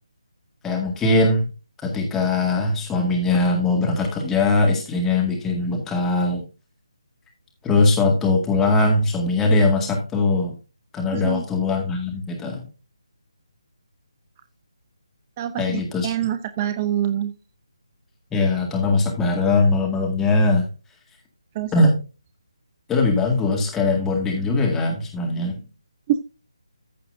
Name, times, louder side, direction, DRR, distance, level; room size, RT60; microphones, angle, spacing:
voice 1, 0.6-1.5 1.8-6.4 7.6-10.6 10.9-12.7 15.6-16.1 18.3-20.7 21.7-22.0 22.9-25.6, left 2 dB, 10° left, 1 dB, 2.0 m, -21 dB
voice 2, 11.1-11.4 15.4-17.3 21.5-21.7 26.1-26.2, right 11 dB, 25° right, 10 dB, 0.5 m, -25 dB
14.5 x 5.5 x 2.7 m, 0.31 s
figure-of-eight pair, 155°, 3 cm